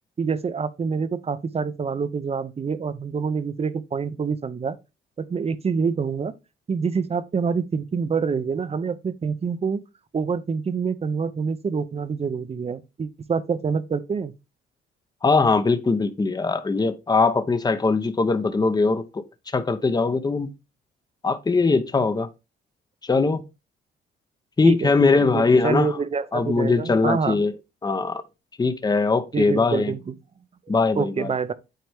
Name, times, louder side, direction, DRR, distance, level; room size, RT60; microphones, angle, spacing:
voice 1, 0.2-4.8 5.2-6.3 6.7-9.8 10.1-14.3 24.6-27.4 29.3-30.1 30.9-31.5, right 5 dB, 30° right, 0.7 m, -26 dB
voice 2, 15.2-20.5 21.2-22.3 23.0-23.4 24.6-26.0 26.3-27.5 27.8-28.2 28.6-29.9 30.7-31.3, left 4 dB, 20° left, 0.8 m, -21 dB
9.2 x 4.3 x 3.4 m
cardioid pair, 90°, 20 cm